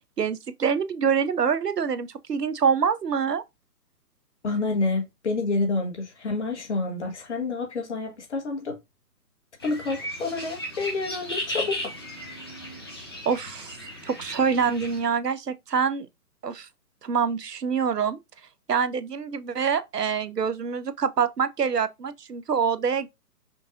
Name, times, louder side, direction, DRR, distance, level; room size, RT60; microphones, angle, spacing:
voice 1, 0.2-3.4 13.3-13.8 14.0-16.1 16.4-16.7 17.0-18.2 18.7-23.1, right 6 dB, 85° right, 0.6 m, -25 dB
voice 2, 4.4-8.8 9.6-11.8, left 3 dB, 45° left, 1.2 m, -28 dB
sound 1, 9.6-15.0, left 1 dB, 15° left, 0.5 m, -36 dB
5.2 x 2.6 x 2.4 m
figure-of-eight pair, 130°, 47 cm